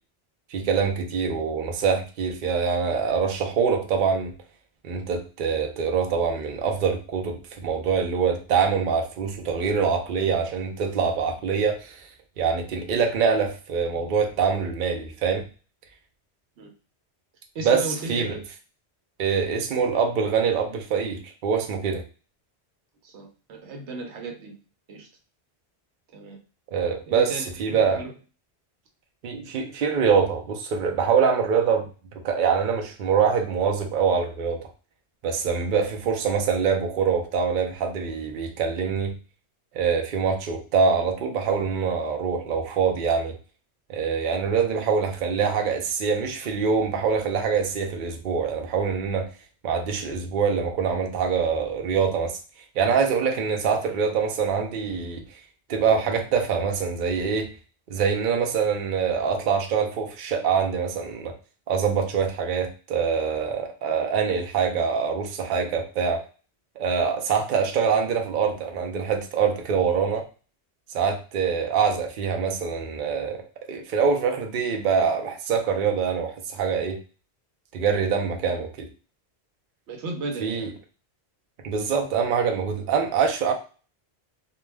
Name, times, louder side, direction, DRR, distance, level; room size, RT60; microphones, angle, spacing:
voice 1, 0.5-4.3 4.8-12.1 12.4-15.5 17.6-18.4 19.2-22.0 26.7-27.3 27.6-28.0 29.2-31.9 32.2-34.7 35.2-39.1 39.7-43.4 43.9-49.3 49.6-52.4 52.8-55.4 55.7-57.5 57.9-61.4 61.7-66.2 66.8-70.3 70.9-73.4 73.7-77.0 77.7-78.9 80.4-80.7 81.6-83.5, right 6 dB, 60° right, 3 dB, 0.6 m, -24 dB
voice 2, 17.5-18.4 23.0-24.5 24.9-25.1 26.1-26.4 27.1-28.1 79.9-80.8, right 3 dB, 90° right, 3 dB, 1.0 m, -35 dB
2.3 x 2.2 x 3.2 m, 0.35 s
omnidirectional pair, 1.1 m